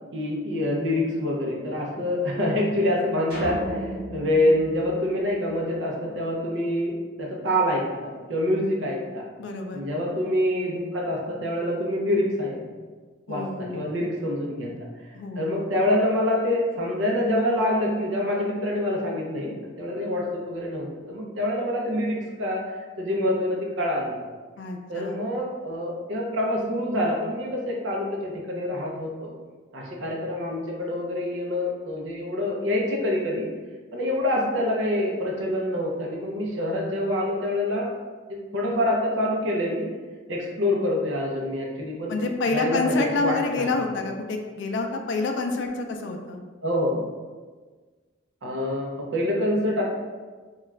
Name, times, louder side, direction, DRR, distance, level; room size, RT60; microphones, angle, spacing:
voice 1, 0.1-6.9 7.2-9.2 9.7-12.7 13.3-14.7 15.4-24.2 24.9-29.3 29.7-33.5 33.9-37.9 38.3-39.9 40.3-42.2 42.5-43.7 46.6-47.0 48.4-49.8, left 1 dB, 90° right, -2 dB, 0.6 m, -26 dB
sound 1, 3.3-5.8, equal, 55° right, 0.9 m, -35 dB
voice 2, 9.4-9.8 13.3-14.0 14.6-14.8 15.1-15.6 24.6-25.2 42.1-46.4, left 3 dB, 70° left, 4 dB, 0.3 m, -28 dB
2.4 x 2.2 x 3.1 m, 1.4 s
head